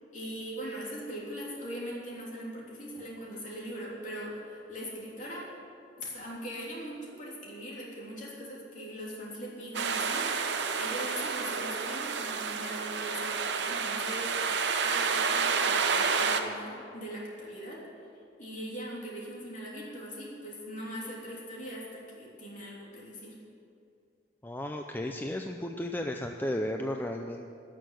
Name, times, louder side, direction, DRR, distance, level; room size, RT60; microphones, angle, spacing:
voice 1, 0.1-5.5 6.0-14.3 14.8-17.8 18.4-23.3, equal, 45° left, -4 dB, 3.2 m, -41 dB
sound 1, 9.7-16.4, right 5 dB, 75° right, 0.9 m, -29 dB
voice 2, 24.4-27.5, left 1 dB, 10° left, 3 dB, 0.4 m, -34 dB
12.5 x 6.6 x 9.5 m, 2.5 s
head